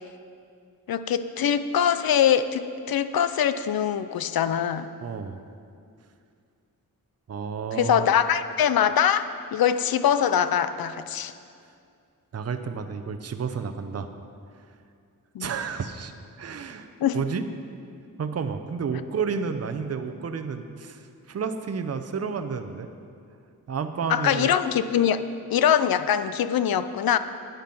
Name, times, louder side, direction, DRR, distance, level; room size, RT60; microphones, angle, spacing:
voice 1, 0.9-4.9 7.7-11.3 15.3-15.5 17.0-17.2 24.1-25.2 25.5-27.2, left 9 dB, 80° left, 12 dB, 0.6 m, -23 dB
voice 2, 5.0-5.4 7.3-8.1 12.3-14.1 15.4-16.1 16.4-17.4 18.2-22.9 23.7-24.5, right 6 dB, 45° right, 8 dB, 0.7 m, -31 dB
12.0 x 9.1 x 5.5 m, 2.4 s
wide cardioid pair, 115°, 35 cm